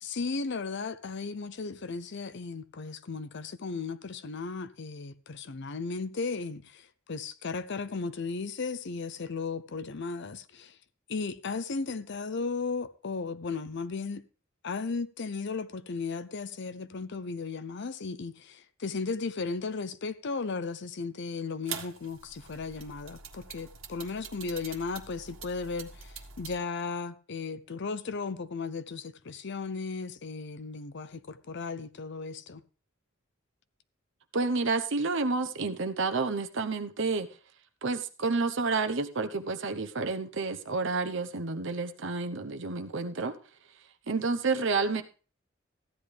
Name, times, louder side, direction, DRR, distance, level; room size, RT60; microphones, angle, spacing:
voice 1, 0.0-10.8 11.1-14.2 14.6-32.6, left 4 dB, 60° left, 0.6 m, -35 dB
sound 1, 21.7-26.6, right 7 dB, 90° right, 1.6 m, -44 dB
voice 2, 34.3-37.3 37.8-43.3 44.1-45.0, right 3 dB, 65° right, 0.9 m, -30 dB
14.5 x 10.0 x 3.4 m
head